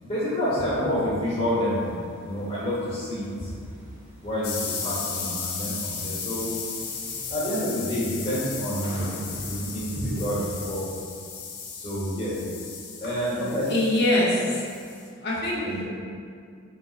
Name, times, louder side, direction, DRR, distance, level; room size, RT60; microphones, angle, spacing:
voice 1, 0.0-1.9 2.2-3.5 4.2-6.5 7.3-10.9 11.8-12.4 13.0-13.9 15.6-15.7, equal, 25° left, -8 dB, 1.1 m, -28 dB
sound 1, 1.7-10.6, right 1 dB, 30° right, 0.7 m, -42 dB
sound 2, 4.4-15.1, left 5 dB, 80° left, 0.7 m, -35 dB
voice 2, 13.7-14.7 15.2-15.8, left 1 dB, 50° left, -5 dB, 0.8 m, -24 dB
5.1 x 3.6 x 2.4 m, 2.2 s
head